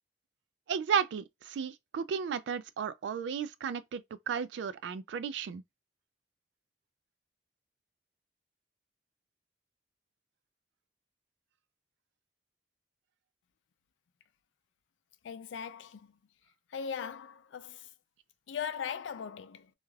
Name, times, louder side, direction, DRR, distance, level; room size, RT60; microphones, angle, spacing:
voice 1, 0.7-4.0 4.3-5.6, right 7 dB, 70° right, 0.3 m, -33 dB
voice 2, 15.2-16.2 16.7-17.9 18.5-19.7, left 7 dB, 85° left, 0.4 m, -39 dB
2.3 x 2.2 x 3.1 m
head